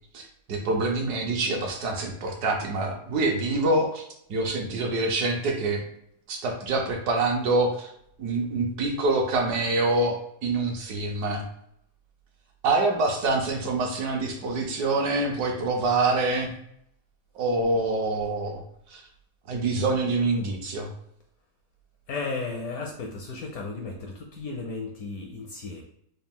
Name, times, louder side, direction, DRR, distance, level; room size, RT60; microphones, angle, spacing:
voice 1, 0.1-4.0 4.3-5.8 6.3-7.9 8.2-11.4 12.6-16.5 17.3-18.6 18.9-19.0 19.5-20.9, right 2 dB, 70° right, 2 dB, 1.1 m, -26 dB
voice 2, 22.1-25.8, left 3 dB, 70° left, 1 dB, 0.9 m, -34 dB
4.0 x 2.3 x 3.6 m, 0.71 s
omnidirectional pair, 2.0 m